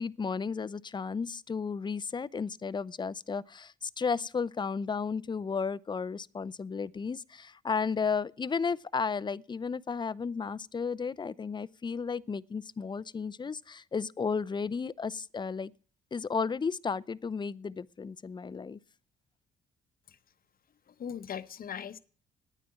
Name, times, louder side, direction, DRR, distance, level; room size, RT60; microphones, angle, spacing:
voice 1, 0.0-15.7 16.1-18.8, left 5 dB, 25° left, 0.5 m, -33 dB
voice 2, 20.9-22.0, left 8 dB, 50° left, 0.9 m, -39 dB
9.6 x 9.2 x 9.6 m
supercardioid pair, 60°, 19 cm